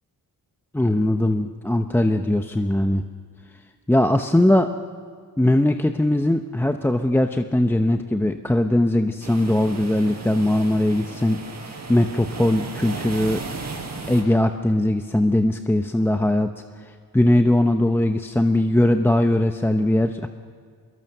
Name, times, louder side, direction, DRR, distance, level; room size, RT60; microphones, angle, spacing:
voice 1, 0.7-3.0 3.9-4.7 5.4-13.4 14.1-16.5 17.1-20.3, left 1 dB, 5° left, 6 dB, 0.8 m, -20 dB
sound 1, 9.2-14.2, right 4 dB, 50° right, 5.4 m, -35 dB
24.5 x 22.0 x 6.7 m, 2.1 s
cardioid pair, 110°, 36 cm